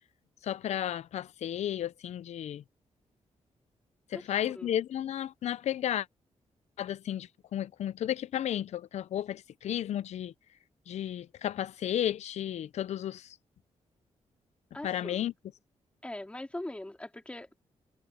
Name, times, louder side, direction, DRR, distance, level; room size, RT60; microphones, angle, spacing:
voice 1, 0.4-2.6 4.1-6.1 6.8-10.3 10.9-13.4 14.8-15.3, left 11 dB, 75° left, 0.5 m, -33 dB
voice 2, 4.1-4.7 14.7-15.2 16.0-17.7, left 1 dB, 10° left, 4.0 m, -42 dB
wide cardioid pair, 140°, 12 cm